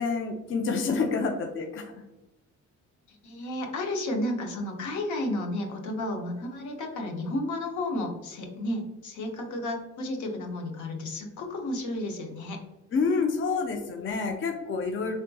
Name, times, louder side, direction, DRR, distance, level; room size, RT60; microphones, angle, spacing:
voice 1, 0.0-1.9 12.9-15.2, left 4 dB, 45° left, 3 dB, 0.5 m, -28 dB
voice 2, 3.1-12.6, left 1 dB, 75° left, 3 dB, 0.7 m, -32 dB
3.5 x 2.6 x 2.2 m, 1.0 s
cardioid pair, 90°, 30 cm